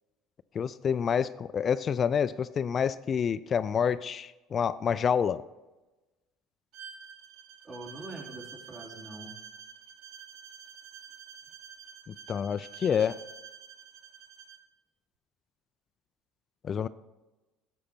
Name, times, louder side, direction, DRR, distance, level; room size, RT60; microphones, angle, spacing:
voice 1, 0.5-5.4 12.1-13.2 16.6-16.9, left 7 dB, 40° left, 14 dB, 0.3 m, -28 dB
Bowed string instrument, 6.7-14.7, right 7 dB, 65° right, 0.8 m, -48 dB
voice 2, 7.6-9.3, right 2 dB, 40° right, -2 dB, 3.2 m, -43 dB
11.5 x 7.1 x 4.4 m, 1.1 s
hypercardioid pair, 70°, 0 cm